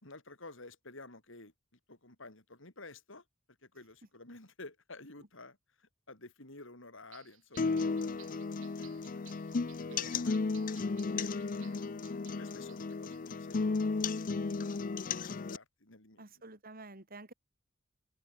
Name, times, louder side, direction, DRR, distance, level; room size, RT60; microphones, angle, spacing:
voice 1, 0.0-1.5 1.9-3.2 3.6-9.3 10.0-10.4 11.1-14.3 15.1-16.3, left 2 dB, 65° left, 4.9 m, -52 dB
sound 1, 7.1-13.6 14.0-14.2, right 14 dB, 75° right, 7.9 m, -61 dB
sound 2, 7.6-15.6, left 4 dB, 40° left, 0.5 m, -34 dB
voice 2, 9.9-10.3 16.2-17.3, right 2 dB, 45° right, 4.2 m, -50 dB
head